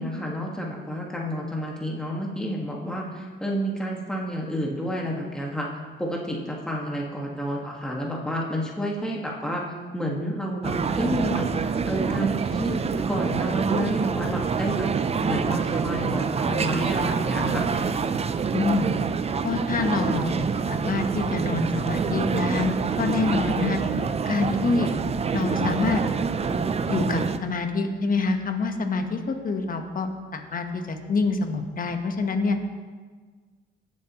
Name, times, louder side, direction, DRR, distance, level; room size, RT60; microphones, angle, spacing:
voice 1, 0.0-5.7 6.0-9.6 9.9-12.8 13.1-14.9 15.2-17.7, equal, 5° left, -2 dB, 1.7 m, -30 dB
sound 1, 10.6-27.4, right 5 dB, 30° right, 0.5 m, -26 dB
voice 2, 18.5-18.9 19.4-20.4 20.7-23.8 24.3-24.9 25.3-26.0 26.9-32.6, left 3 dB, 45° left, 6 dB, 1.2 m, -26 dB
16.5 x 7.3 x 3.0 m, 1.5 s
cardioid pair, 90°, 20 cm